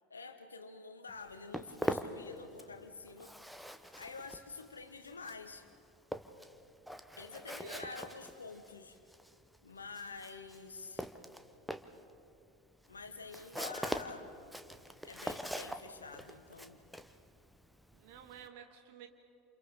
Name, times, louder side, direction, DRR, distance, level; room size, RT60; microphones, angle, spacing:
voice 1, 0.1-3.3 3.9-5.7 7.2-9.0 9.6-11.1 12.9-14.3 15.0-16.8, left 4 dB, 80° left, 9 dB, 1.3 m, -48 dB
Walk footsteps, 1.1-2.8 3.1-18.5, equal, ahead, 1.0 m, -43 dB
voice 2, 7.6-8.0 17.9-19.1, right 9 dB, 55° right, 5 dB, 2.0 m, -52 dB
29.0 x 28.5 x 3.8 m, 2.7 s
figure-of-eight pair, 75°, 0 cm